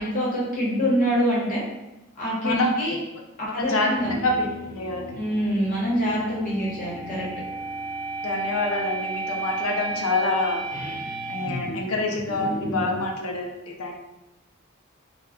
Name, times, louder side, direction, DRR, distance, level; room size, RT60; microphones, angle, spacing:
voice 1, 0.0-1.6 2.2-2.9 3.4-4.1 5.2-7.3, equal, 40° left, -6 dB, 0.9 m, -25 dB
voice 2, 3.6-4.5 4.7-5.1 8.2-10.6 11.3-13.9, left 2 dB, 85° left, 1 dB, 0.5 m, -26 dB
sound 1, 3.9-13.0, right 2 dB, 15° right, 0.8 m, -33 dB
2.2 x 2.1 x 3.5 m, 0.97 s
head